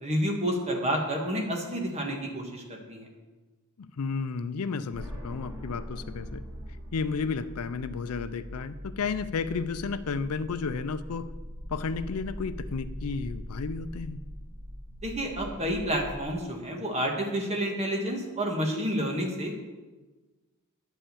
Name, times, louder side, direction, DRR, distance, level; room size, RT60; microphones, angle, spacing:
voice 1, 0.0-3.1 15.0-19.6, equal, 30° right, 1 dB, 1.7 m, -29 dB
voice 2, 3.8-6.4 6.9-11.3 11.7-14.2, left 5 dB, 80° left, 13 dB, 0.5 m, -32 dB
sound 1, 4.9-16.2, equal, 10° right, 1.9 m, -41 dB
9.9 x 5.6 x 7.0 m, 1.2 s
head